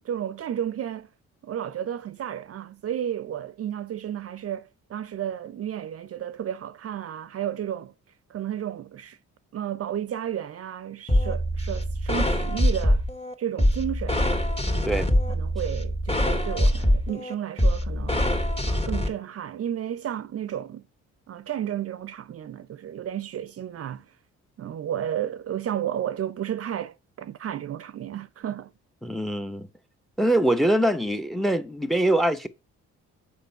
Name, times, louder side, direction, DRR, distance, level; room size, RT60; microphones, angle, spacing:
voice 1, 0.0-1.1 1.4-7.9 8.3-9.2 9.5-13.0 13.4-14.3 14.7-15.0 15.3-18.3 18.6-20.8 21.3-24.1 24.6-28.7, right 10 dB, 50° right, 0.6 m, -32 dB
sound 1, 11.1-19.1, equal, 20° left, 1.9 m, -24 dB
voice 2, 29.0-29.7 30.2-32.5, right 1 dB, ahead, 1.0 m, -23 dB
6.8 x 5.3 x 5.4 m
cardioid pair, 90°, 30 cm